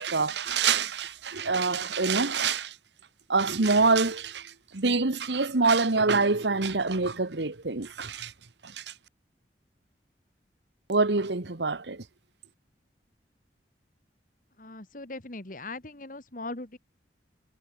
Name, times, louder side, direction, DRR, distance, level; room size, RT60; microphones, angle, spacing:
voice 1, 0.0-2.7 3.3-8.3 8.6-8.9 10.9-12.0, right 4 dB, 80° right, 1.4 m, -26 dB
voice 2, 14.6-16.8, left 2 dB, 50° left, 2.1 m, -39 dB
head